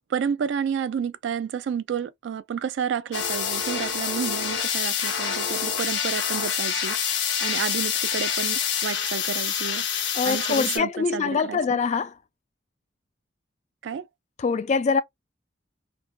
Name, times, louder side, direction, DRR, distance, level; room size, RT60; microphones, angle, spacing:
voice 1, 0.1-7.0 7.4-9.8 10.2-11.8 13.8-14.0, right 7 dB, 70° right, 0.3 m, -30 dB
sound 1, 3.1-10.8, left 8 dB, 65° left, 0.7 m, -27 dB
voice 2, 10.1-12.1 14.4-15.0, left 5 dB, 40° left, 0.3 m, -24 dB
2.5 x 2.2 x 2.3 m
head